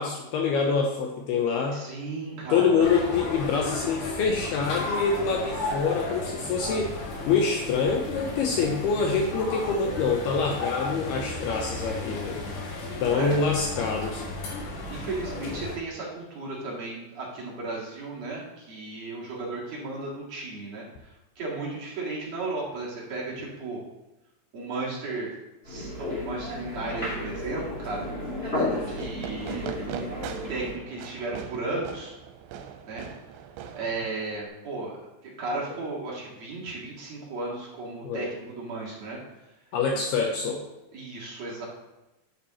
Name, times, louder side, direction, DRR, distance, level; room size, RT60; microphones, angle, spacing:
voice 1, 0.0-1.8 2.5-6.9 7.3-12.4 13.0-14.2 38.0-38.3 39.7-40.6, left 5 dB, 80° left, 1 dB, 2.4 m, -25 dB
voice 2, 1.7-3.0 13.0-13.4 14.9-23.8 24.5-25.3 25.6-28.0 28.9-32.2 32.9-33.1 33.7-35.0 35.2-39.2 39.9-40.1 40.9-41.6, right 3 dB, 50° right, -5 dB, 2.3 m, -35 dB
sound 1, 2.8-15.8, left 2 dB, 55° left, 2.5 m, -34 dB
sound 2, 25.6-30.7, left 1 dB, 15° left, 2.3 m, -33 dB
Fireworks, 28.9-34.5, right 8 dB, 90° right, 3.1 m, -41 dB
11.5 x 7.0 x 2.9 m, 0.98 s
omnidirectional pair, 5.3 m